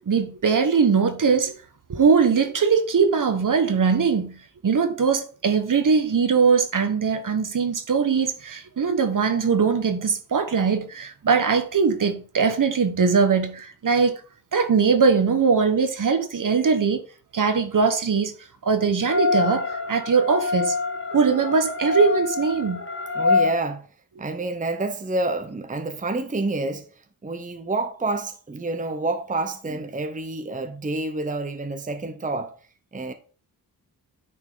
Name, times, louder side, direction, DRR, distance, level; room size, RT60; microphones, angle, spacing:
voice 1, 0.1-1.5 1.9-4.4 4.6-14.1 14.5-17.0 17.3-18.3 18.6-20.7 21.1-22.8, right 5 dB, 55° right, 1.2 m, -21 dB
sound 1, 19.0-23.5, left 4 dB, 35° left, 1.0 m, -25 dB
voice 2, 23.1-23.9 24.2-26.9 27.2-32.6 32.9-33.1, right 2 dB, 20° right, 0.8 m, -28 dB
9.5 x 4.5 x 3.8 m
cardioid pair, 70°, 37 cm